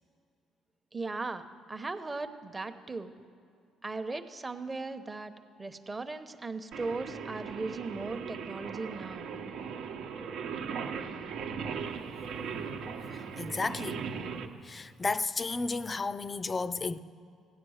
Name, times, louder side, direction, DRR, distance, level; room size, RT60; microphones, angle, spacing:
voice 1, 0.9-3.1 3.8-5.3 5.6-9.3, right 3 dB, 20° right, 0.9 m, -38 dB
Singing, 6.7-14.5, right 6 dB, 70° right, 1.1 m, -38 dB
voice 2, 13.0-14.1 14.6-17.0, left 3 dB, 25° left, 0.5 m, -33 dB
16.5 x 10.0 x 6.4 m
cardioid pair, 100°, 0 cm